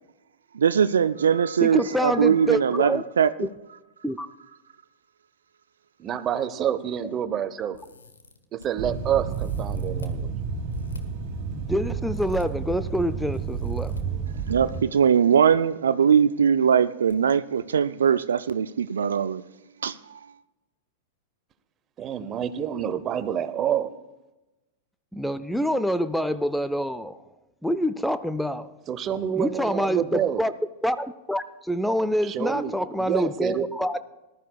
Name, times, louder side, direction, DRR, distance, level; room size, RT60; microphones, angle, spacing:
voice 1, 0.5-3.5 14.5-19.4 19.8-20.2, right 7 dB, 75° right, 0.4 m, -21 dB
voice 2, 1.6-3.0 3.4-3.5 4.0-4.3 11.5-14.2 25.1-27.2 27.6-28.7 29.3-30.5 30.8-34.0, equal, ahead, 0.5 m, -26 dB
voice 3, 6.0-7.8 8.5-10.3 22.0-23.9 28.9-30.4 32.2-32.7 33.0-33.7, right 9 dB, 30° right, 0.8 m, -27 dB
sound 1, 7.7-8.7 9.3-10.2 10.7-11.0 12.1-12.5 13.3-14.0 15.1-15.6 15.8-15.9 17.1-17.2 17.6-17.7, left 3 dB, 85° left, 1.2 m, -45 dB
sound 2, 8.8-14.8, right 6 dB, 55° right, 1.8 m, -31 dB
19.0 x 12.5 x 2.3 m
figure-of-eight pair, 95°, 0 cm